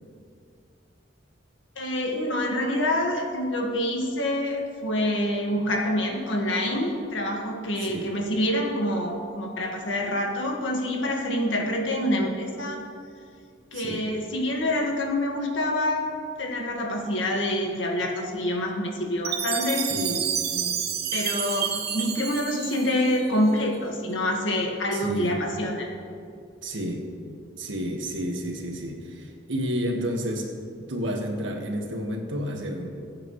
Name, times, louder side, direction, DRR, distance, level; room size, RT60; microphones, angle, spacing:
voice 1, 1.8-12.8 13.7-16.1 16.4-19.9 21.1-25.9, left 1 dB, 80° left, 1 dB, 1.8 m, -26 dB
voice 2, 13.7-14.0 19.8-20.8 24.9-25.5 26.6-27.1 27.6-30.5 30.9-33.0, equal, 80° right, 1 dB, 1.7 m, -31 dB
Chime, 19.2-23.5, right 8 dB, 55° right, 0.8 m, -29 dB
21.0 x 8.7 x 3.2 m, 2.3 s
head